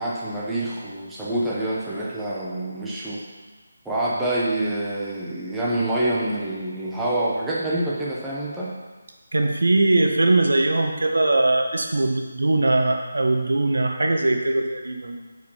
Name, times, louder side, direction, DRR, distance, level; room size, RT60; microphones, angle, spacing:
voice 1, 0.0-3.2 3.8-8.7, right 1 dB, 5° right, -8 dB, 0.9 m, -26 dB
voice 2, 9.3-15.2, right 2 dB, 85° right, 3 dB, 1.3 m, -21 dB
9.4 x 5.0 x 5.6 m, 1.3 s
figure-of-eight pair, 175°, 0 cm